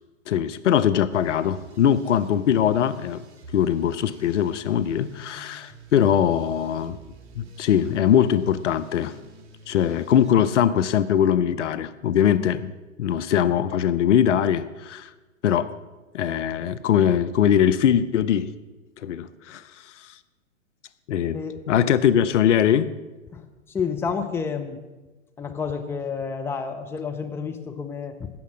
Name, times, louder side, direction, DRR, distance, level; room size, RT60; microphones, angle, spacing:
voice 1, 0.3-3.2 3.5-7.0 7.4-9.1 9.7-12.7 13.0-15.1 15.4-15.7 16.1-18.5 19.0-19.6 21.1-21.4 21.7-22.9, left 9 dB, 60° left, 13 dB, 0.7 m, -21 dB
sound 1, 1.1-10.3, right 2 dB, 50° right, 1.5 m, -48 dB
voice 2, 23.7-24.8 25.4-28.3, left 5 dB, 5° left, 4 dB, 0.6 m, -30 dB
13.0 x 8.2 x 6.3 m, 1.2 s
figure-of-eight pair, 115°, 40 cm